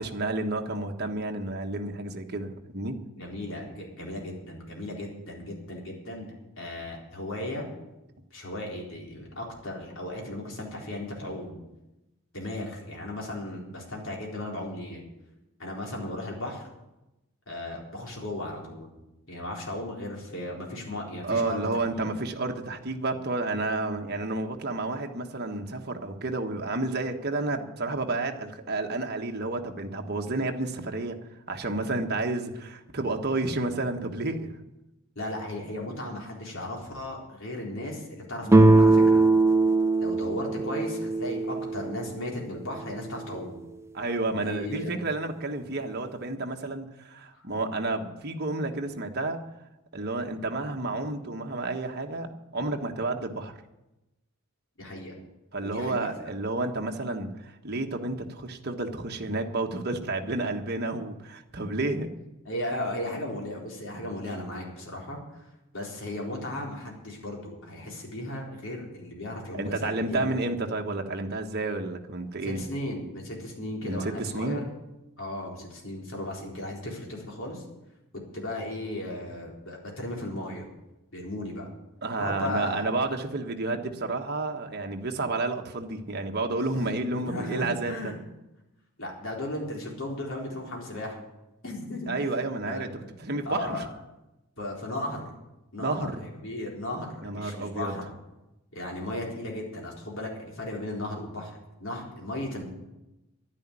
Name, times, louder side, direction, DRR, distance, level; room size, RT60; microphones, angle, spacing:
voice 1, 0.0-3.0 21.2-31.2 31.5-34.5 43.9-49.4 49.9-53.6 55.5-62.1 69.5-72.6 73.8-74.6 82.0-88.1 92.1-93.9 95.8-96.2 97.2-98.0, right 2 dB, 45° right, 3 dB, 1.4 m, -31 dB
voice 2, 3.2-6.3 6.6-7.7 8.3-11.6 12.3-15.0 15.6-16.7 17.5-18.9 19.3-22.0 35.2-39.2 40.0-43.6 44.4-44.9 54.8-55.1 55.6-56.3 62.5-65.5 65.7-70.3 72.4-74.6 75.2-77.6 78.3-80.7 81.1-81.7 82.2-83.0 87.1-88.2 89.0-91.2 91.6-93.1 93.5-93.8 94.6-95.2 95.7-98.1 98.7-102.6, left 1 dB, 60° left, -1 dB, 4.2 m, -36 dB
sound 1, 38.5-42.1, right 2 dB, 10° right, 0.5 m, -20 dB
11.0 x 10.5 x 9.7 m, 0.96 s
head